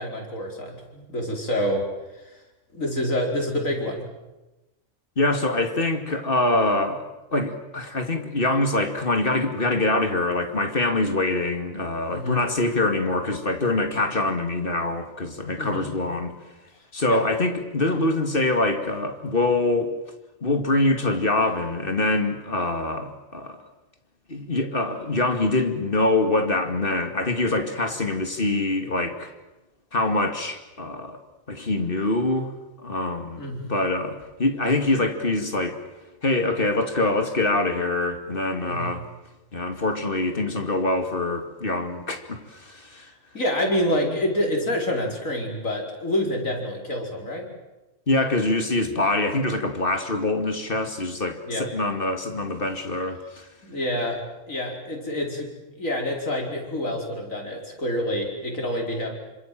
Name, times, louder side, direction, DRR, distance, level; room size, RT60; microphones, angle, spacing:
voice 1, 0.0-1.9 2.2-2.3 2.7-4.0 12.1-12.4 15.5-15.9 17.1-17.2 33.4-33.6 38.6-39.0 43.3-47.5 51.3-51.7 53.6-54.2 54.5-55.5 55.8-59.1, left 1 dB, 75° left, 5.3 m, -27 dB
voice 2, 5.2-7.0 7.3-16.3 16.9-19.9 20.4-23.6 24.3-29.3 29.9-31.2 31.5-32.5 32.8-35.8 36.2-39.0 39.5-43.1 48.1-53.5, left 2 dB, 40° left, 2.7 m, -24 dB
27.5 x 25.5 x 7.7 m
omnidirectional pair, 1.4 m